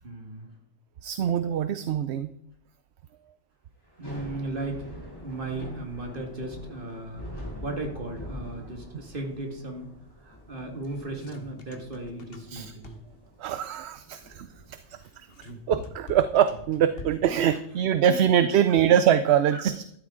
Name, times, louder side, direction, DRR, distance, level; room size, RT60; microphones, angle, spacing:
voice 1, 0.0-0.5 4.0-4.8 5.2-7.3 7.6-9.9 10.2-12.9 17.5-17.6 18.1-18.2 19.5-19.6, right 2 dB, 50° right, 2 dB, 2.3 m, -36 dB
voice 2, 1.0-2.3 12.5-12.7 13.4-14.8 15.7-19.8, right 9 dB, 70° right, 12 dB, 0.9 m, -23 dB
Thunder / Rain, 3.8-17.0, equal, 20° left, 6.7 m, -45 dB
sound 1, 10.8-13.3 14.9-17.4, left 1 dB, 55° left, 1.6 m, -43 dB
13.5 x 12.0 x 3.8 m, 0.71 s
omnidirectional pair, 1.2 m